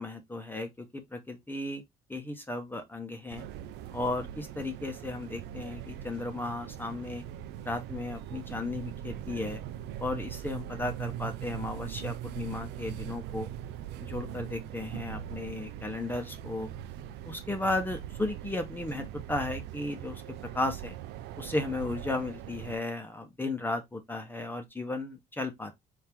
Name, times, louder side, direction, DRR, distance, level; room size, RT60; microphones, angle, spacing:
voice 1, 0.0-1.8 2.1-3.5 3.9-7.2 7.6-9.6 10.0-13.5 14.0-16.7 17.2-20.2 20.5-21.0 21.4-25.8, left 2 dB, 10° left, 0.9 m, -35 dB
sound 1, 3.3-22.8, right 11 dB, 85° right, 0.5 m, -41 dB
3.6 x 2.8 x 4.5 m
cardioid pair, 110°, 17 cm